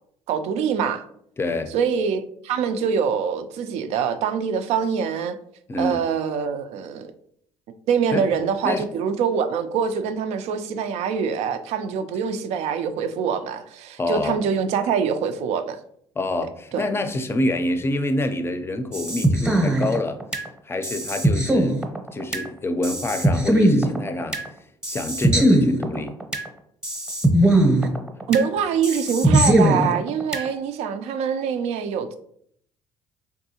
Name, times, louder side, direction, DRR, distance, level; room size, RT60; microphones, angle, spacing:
voice 1, 0.3-1.0 1.7-5.4 5.8-7.1 7.9-15.8 16.7-16.8 28.3-32.1, right 7 dB, 75° right, 0.4 m, -24 dB
voice 2, 1.4-1.7 5.7-6.0 8.1-8.2 8.6-8.9 14.0-14.4 16.2-20.2 20.7-21.8 22.1-24.4 24.9-26.1, left 1 dB, 20° left, 0.5 m, -26 dB
sound 1, 18.9-20.5 20.8-22.5 22.8-24.5 24.8-26.5 26.8-28.5 28.8-30.5, right 1 dB, 5° right, 0.8 m, -20 dB
3.5 x 2.6 x 2.8 m
supercardioid pair, 75°, 11 cm